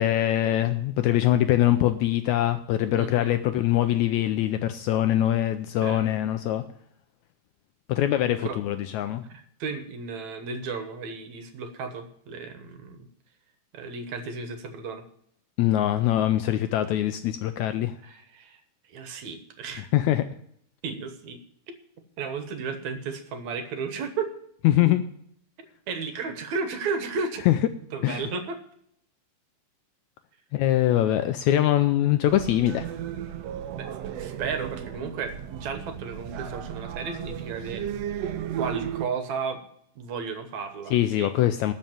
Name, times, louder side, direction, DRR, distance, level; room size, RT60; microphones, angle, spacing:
voice 1, 0.0-6.6 7.9-9.2 15.6-17.9 19.9-20.2 24.6-25.0 27.4-27.6 28.0-28.3 30.5-32.9 40.9-41.7, left 13 dB, 80° left, 10 dB, 1.7 m, -23 dB
voice 2, 2.9-3.4 5.8-6.1 8.4-8.6 9.3-13.0 13.7-15.0 18.0-18.6 18.9-19.9 20.8-21.4 21.7-21.8 22.2-24.3 25.9-27.4 27.9-28.6 33.7-37.8 38.6-39.6 40.0-41.3, right 5 dB, 65° right, 8 dB, 2.2 m, -34 dB
sound 1, 32.3-39.1, right 9 dB, 85° right, 1.4 m, -35 dB
13.0 x 5.6 x 9.0 m, 0.68 s
omnidirectional pair, 3.8 m